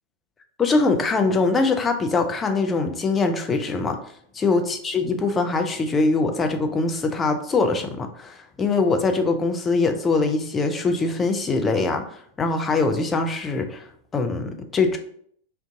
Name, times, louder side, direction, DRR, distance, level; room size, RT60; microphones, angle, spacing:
voice 1, 0.6-4.0 4.3-13.8 14.1-15.0, left 3 dB, 20° left, 5 dB, 0.4 m, -22 dB
2.5 x 2.2 x 3.7 m, 0.64 s
figure-of-eight pair, 90°, 0 cm